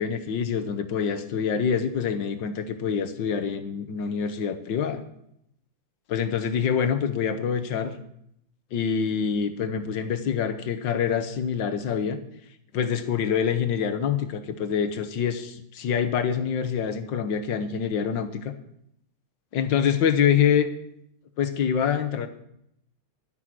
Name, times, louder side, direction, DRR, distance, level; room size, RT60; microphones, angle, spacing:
voice 1, 0.0-5.0 6.1-8.0 8.7-12.2 12.7-18.5 19.5-20.7 21.4-22.3, left 7 dB, 60° left, 9 dB, 1.6 m, -25 dB
11.5 x 9.8 x 6.2 m, 0.75 s
omnidirectional pair, 2.4 m